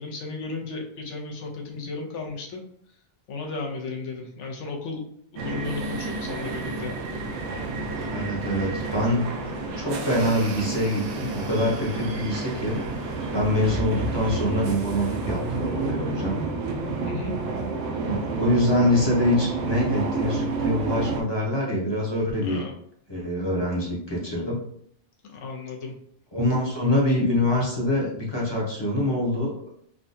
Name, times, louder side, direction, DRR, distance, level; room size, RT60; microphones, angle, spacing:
voice 1, 0.0-2.6 3.3-5.0 5.3-7.0 17.1-17.3 22.4-22.7 25.3-25.9, left 4 dB, 85° left, 0 dB, 1.0 m, -34 dB
sound 1, 5.4-21.2, right 3 dB, 80° right, 0.9 m, -30 dB
voice 2, 8.1-12.8 13.3-16.3 18.1-22.6 23.1-24.6 26.3-29.6, left 1 dB, 25° left, -4 dB, 0.7 m, -25 dB
3.6 x 2.2 x 2.6 m, 0.65 s
omnidirectional pair, 1.2 m